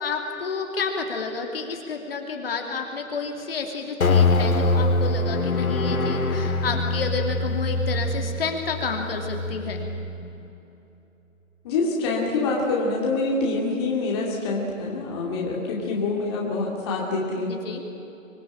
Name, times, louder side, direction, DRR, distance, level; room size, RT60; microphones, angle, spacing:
voice 1, 0.0-9.8 17.5-17.8, left 4 dB, 45° left, 2 dB, 2.8 m, -30 dB
sound 1, 4.0-10.5, left 2 dB, 90° left, 2.2 m, -24 dB
voice 2, 11.6-17.5, left 3 dB, 20° left, -3 dB, 2.7 m, -26 dB
25.0 x 19.0 x 8.9 m, 3.0 s
hypercardioid pair, 170°, 41 cm